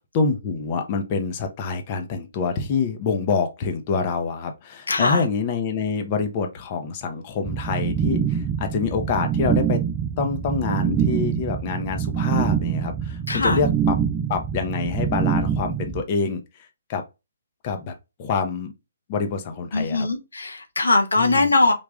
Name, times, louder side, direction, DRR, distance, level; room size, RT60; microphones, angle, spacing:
voice 1, 0.1-9.8 10.2-14.0 14.3-16.4 16.9-17.0 17.6-17.9 18.2-18.7 19.1-20.1 21.2-21.5, left 5 dB, 35° left, 0.7 m, -26 dB
voice 2, 4.9-5.3 13.3-13.6 19.7-21.7, left 3 dB, 90° left, 0.8 m, -21 dB
sound 1, 7.4-16.0, right 8 dB, 15° right, 0.3 m, -25 dB
3.4 x 2.5 x 3.5 m
hypercardioid pair, 145°, 0 cm